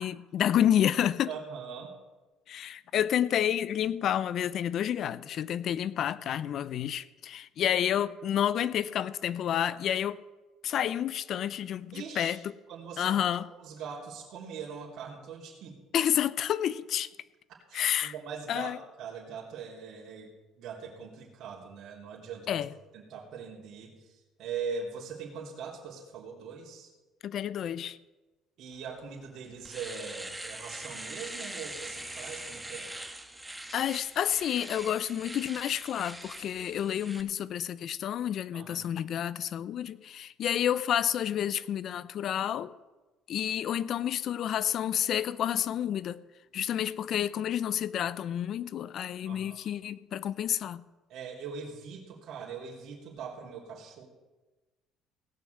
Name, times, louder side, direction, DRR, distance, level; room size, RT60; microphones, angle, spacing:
voice 1, 0.0-1.3 2.5-10.2 10.6-12.4 13.0-13.5 15.9-17.1 17.7-18.1 18.5-18.8 22.5-22.7 27.2-28.0 33.7-42.7 43.3-46.2 46.5-50.8, left 10 dB, 60° left, 0.6 m, -29 dB
voice 2, 1.3-1.9 11.9-12.4 12.7-15.7 17.7-22.6 22.9-26.9 28.6-32.9 38.5-38.9 49.2-49.7 51.1-54.1, right 6 dB, 65° right, 3.3 m, -41 dB
Domestic sounds home sounds, 29.0-29.1 29.5-37.2, right 1 dB, 10° right, 1.5 m, -42 dB
17.5 x 6.2 x 7.9 m
supercardioid pair, 75°, 0 cm